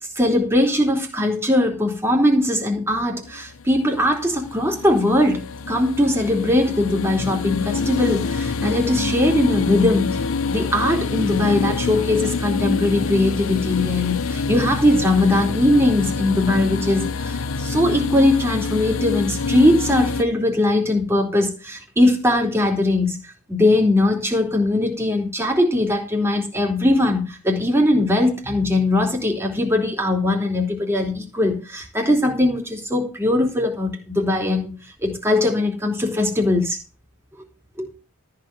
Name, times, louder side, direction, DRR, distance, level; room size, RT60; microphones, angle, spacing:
voice 1, 0.2-10.2 10.5-23.2 23.5-34.8 35.0-36.8 37.8-37.9, left 1 dB, 10° right, 3.0 m, -20 dB
sound 1, 3.3-20.2, left 4 dB, 60° left, 0.8 m, -26 dB
14.0 x 4.8 x 7.7 m
head